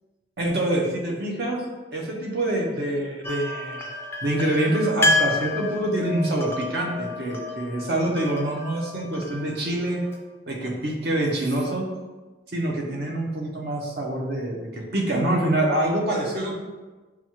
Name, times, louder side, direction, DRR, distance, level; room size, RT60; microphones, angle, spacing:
voice 1, 0.4-1.6 1.9-3.9 4.2-10.0 10.5-11.8 12.5-16.5, right 1 dB, 55° right, -1 dB, 0.7 m, -25 dB
sound 1, 3.2-10.2, left 2 dB, 10° left, 0.3 m, -29 dB
5.8 x 2.4 x 2.9 m, 1.2 s
head